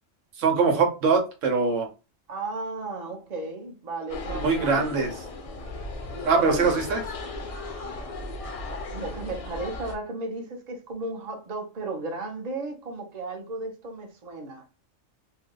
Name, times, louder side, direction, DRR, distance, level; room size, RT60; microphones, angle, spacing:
voice 1, 0.4-1.9 4.4-5.1 6.2-7.0, right 4 dB, 85° right, 1.1 m, -22 dB
voice 2, 2.3-5.2 6.1-6.8 8.9-14.7, right 2 dB, 40° right, 0.7 m, -35 dB
sound 1, 4.1-10.0, left 2 dB, 50° left, 0.4 m, -36 dB
2.7 x 2.2 x 3.7 m
omnidirectional pair, 1.3 m